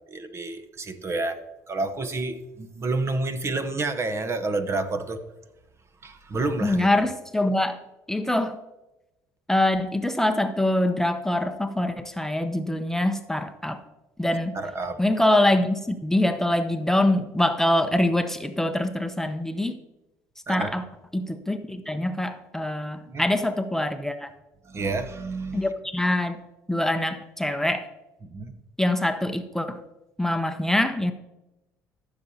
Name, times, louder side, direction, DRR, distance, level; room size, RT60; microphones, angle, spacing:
voice 1, 0.1-1.4 1.7-5.2 6.0-6.9 14.5-15.0 20.5-20.7 23.1-23.2 24.6-25.7 28.3-28.5, right 3 dB, 35° right, 1.0 m, -29 dB
voice 2, 6.6-7.8 8.1-8.6 9.5-13.8 14.2-14.6 15.0-19.8 20.5-20.8 21.1-24.3 25.5-26.4 26.7-27.9 28.8-29.8 30.2-31.1, left 1 dB, 5° left, 0.8 m, -24 dB
15.0 x 6.8 x 2.8 m
supercardioid pair, 70°, 7 cm